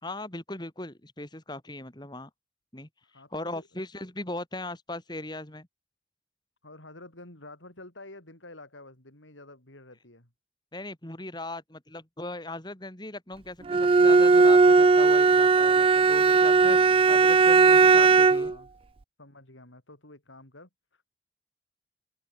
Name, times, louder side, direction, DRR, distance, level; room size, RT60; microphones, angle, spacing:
voice 1, 0.0-2.3 2.7-5.7 10.7-16.8 17.1-18.5, left 2 dB, 25° left, 3.0 m, -38 dB
voice 2, 3.0-3.7 6.6-10.3 16.6-16.8 17.5-18.7 19.2-20.7, left 2 dB, 90° left, 6.4 m, -49 dB
Bowed string instrument, 13.7-18.5, right 4 dB, 30° right, 0.3 m, -18 dB
open air
head